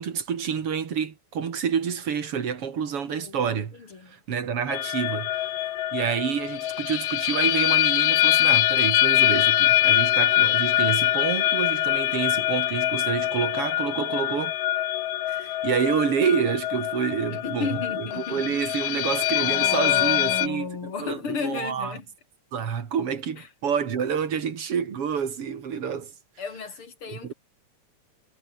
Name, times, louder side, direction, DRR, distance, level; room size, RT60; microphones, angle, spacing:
voice 1, 0.0-3.8 4.1-5.5 5.9-14.6 15.3-17.7 18.0-21.9 22.5-26.1 27.1-27.3, right 7 dB, 50° right, 3.0 m, -28 dB
voice 2, 3.1-3.4 3.8-4.2 17.3-18.6 19.1-22.1 23.4-23.5 26.4-27.3, left 5 dB, 45° left, 4.2 m, -33 dB
sound 1, 4.7-20.5, left 14 dB, 80° left, 2.4 m, -24 dB
omnidirectional pair, 3.4 m